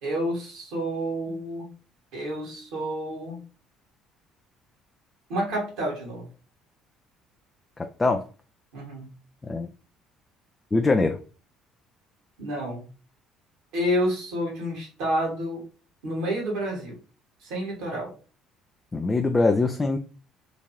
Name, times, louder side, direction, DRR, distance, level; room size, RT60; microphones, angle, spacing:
voice 1, 0.0-1.7 2.1-3.4 5.3-6.3 8.7-9.1 12.4-12.9 13.7-15.6 16.0-17.0 17.4-18.1, equal, 65° right, -2 dB, 1.7 m, -29 dB
voice 2, 10.7-11.2 18.9-20.0, left 3 dB, 25° left, 5 dB, 0.4 m, -22 dB
3.8 x 2.6 x 3.0 m, 0.36 s
figure-of-eight pair, 55°, 0 cm